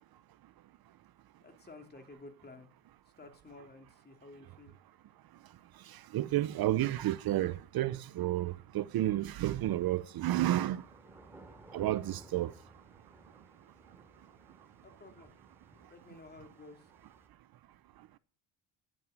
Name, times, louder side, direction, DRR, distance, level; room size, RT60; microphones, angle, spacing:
voice 1, 1.4-2.7 3.0-4.8 14.8-15.3 15.9-16.9, left 3 dB, 20° left, 2.8 m, -53 dB
voice 2, 5.9-10.8 11.7-12.5, right 14 dB, 55° right, 0.8 m, -31 dB
sound 1, 9.7-17.3, right 1 dB, 5° right, 3.1 m, -58 dB
10.5 x 9.2 x 8.7 m
cardioid pair, 110°, 44 cm